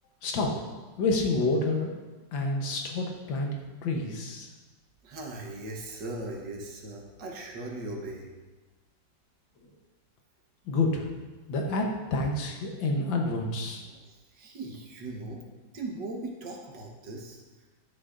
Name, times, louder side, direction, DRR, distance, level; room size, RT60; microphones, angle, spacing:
voice 1, 0.2-0.5 1.0-1.9 2.3-4.5 10.7-11.1 11.5-13.8, left 2 dB, 80° left, 1 dB, 1.7 m, -28 dB
voice 2, 5.0-8.3 13.9-15.4 15.7-17.4, right 2 dB, 65° right, -1 dB, 1.8 m, -39 dB
11.5 x 6.5 x 2.5 m, 1.3 s
omnidirectional pair, 2.1 m